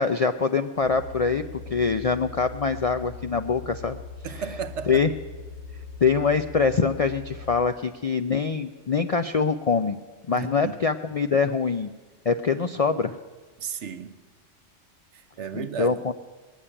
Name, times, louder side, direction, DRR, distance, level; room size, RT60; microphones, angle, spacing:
voice 1, 0.0-1.4 1.7-4.0 4.9-5.1 6.0-10.0 10.3-11.9 12.3-13.2 15.5-16.1, left 5 dB, 55° left, 0.4 m, -24 dB
sound 1, 0.8-7.7, left 4 dB, 35° left, 2.9 m, -41 dB
voice 2, 4.2-5.1 10.3-10.7 13.6-14.2 15.1-16.0, right 7 dB, 70° right, 1.1 m, -34 dB
19.5 x 7.4 x 9.9 m
omnidirectional pair, 1.3 m